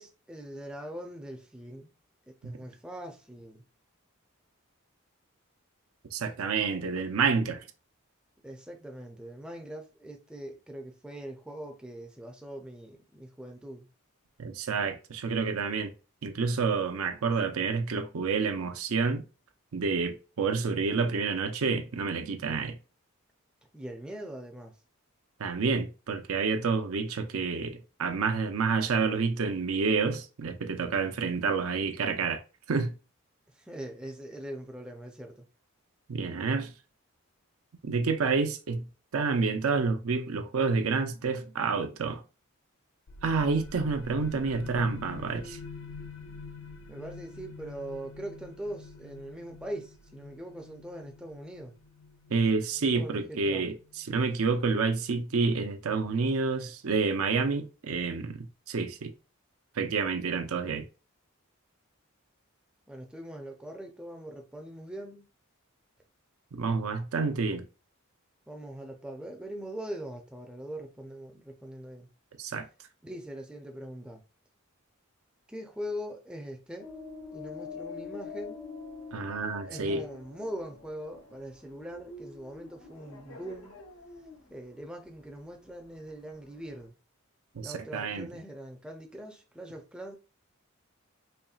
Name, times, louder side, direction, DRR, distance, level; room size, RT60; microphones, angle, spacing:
voice 1, 0.0-1.9 2.3-3.6 8.4-13.9 23.7-24.8 33.5-35.5 46.9-51.7 52.9-53.7 62.9-65.2 68.5-72.1 73.0-74.2 75.5-76.9 77.3-78.6 79.7-83.8 84.5-86.9 87.6-90.2, right 1 dB, 5° right, 0.4 m, -42 dB
voice 2, 6.1-7.6 14.4-15.9 16.2-19.2 19.7-22.8 25.4-32.4 32.7-32.9 36.1-36.7 37.8-38.9 39.1-42.2 43.2-45.6 52.3-59.1 59.8-60.8 66.5-67.7 72.4-72.7 79.1-80.0 87.5-88.3, right 4 dB, 75° right, 0.5 m, -29 dB
sound 1, 43.1-54.4, left 4 dB, 65° left, 0.5 m, -47 dB
sound 2, 76.8-86.9, left 4 dB, 85° left, 1.0 m, -46 dB
4.2 x 3.1 x 2.3 m
head